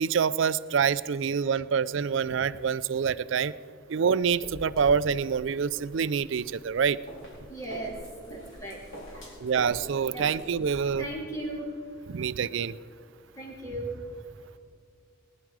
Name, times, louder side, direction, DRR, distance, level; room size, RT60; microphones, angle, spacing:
voice 1, 0.0-3.5 3.9-7.0 9.4-11.0 12.1-12.7, right 6 dB, 60° right, 17 dB, 0.4 m, -26 dB
sound 1, 4.2-10.9, equal, 75° left, 4.2 m, -45 dB
voice 2, 7.5-7.9 8.3-8.8 10.1-10.3 11.0-11.7 13.4-13.9, right 1 dB, 15° left, -2 dB, 2.6 m, -36 dB
19.5 x 10.5 x 4.8 m, 2.2 s
head